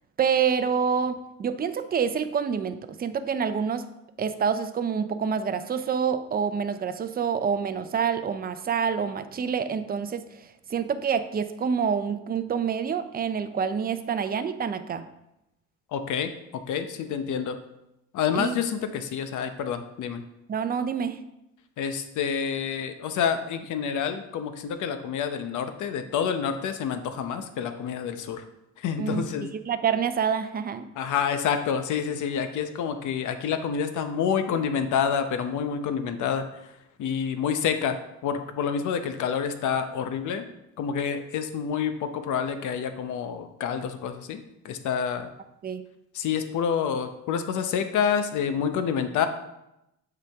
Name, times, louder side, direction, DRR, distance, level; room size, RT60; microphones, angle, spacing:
voice 1, 0.2-3.8 4.2-10.4 10.7-15.0 18.3-18.6 20.5-21.2 29.0-30.9 45.6-45.8, right 7 dB, 30° right, 10 dB, 0.5 m, -27 dB
voice 2, 15.9-16.3 16.7-17.6 18.1-20.2 21.8-28.4 28.8-29.5 31.0-36.5 37.0-38.0 38.2-40.4 40.8-45.3 46.1-49.3, left 7 dB, 80° left, 8 dB, 0.8 m, -28 dB
7.6 x 4.9 x 3.5 m, 0.87 s
cardioid pair, 90°, 30 cm